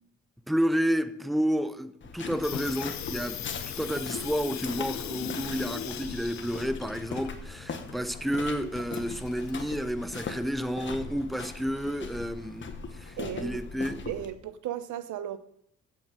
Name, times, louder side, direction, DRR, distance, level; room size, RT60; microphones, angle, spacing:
voice 1, 0.5-12.7 12.9-14.0, equal, ahead, 0.8 m, -30 dB
sound 1, 2.0-14.3, left 4 dB, 40° left, 1.4 m, -40 dB
Water tap faucet / Sink (filling or washing), 2.2-9.8, left 10 dB, 65° left, 1.0 m, -39 dB
voice 2, 13.2-13.6 14.1-15.4, right 11 dB, 75° right, 0.9 m, -35 dB
7.5 x 7.2 x 8.1 m
cardioid pair, 90°, 30 cm